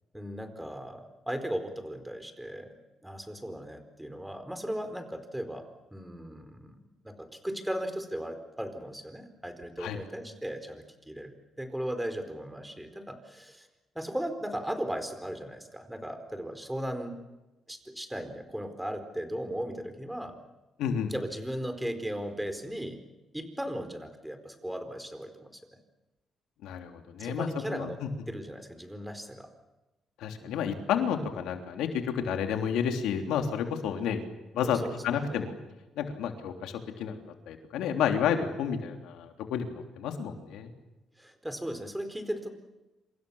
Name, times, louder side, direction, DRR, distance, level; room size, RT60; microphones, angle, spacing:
voice 1, 0.1-2.7 3.0-6.8 7.0-13.7 13.9-17.1 17.7-20.4 21.1-23.0 23.3-25.6 27.2-28.0 28.3-29.5 30.4-30.6 34.6-34.9 35.3-35.4 41.2-42.5, equal, 5° right, 8 dB, 4.5 m, -37 dB
voice 2, 20.8-21.1 26.6-28.1 30.2-34.2 34.5-34.8 35.0-35.5 36.0-37.2 37.5-40.7, left 8 dB, 90° left, 5 dB, 3.2 m, -31 dB
27.0 x 27.0 x 7.2 m, 1.1 s
cardioid pair, 90°, 0 cm